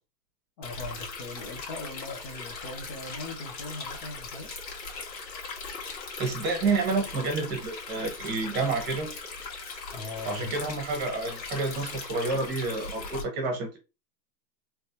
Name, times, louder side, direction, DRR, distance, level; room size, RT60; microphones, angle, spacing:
Stream, 0.6-13.2, left 4 dB, 90° left, 1.7 m, -39 dB
voice 1, 0.6-4.5 9.9-10.7, left 2 dB, 25° left, 0.5 m, -40 dB
voice 2, 6.2-9.1 10.2-13.8, right 3 dB, 20° right, 1.0 m, -29 dB
3.2 x 3.1 x 2.8 m
hypercardioid pair, 150°, 50 cm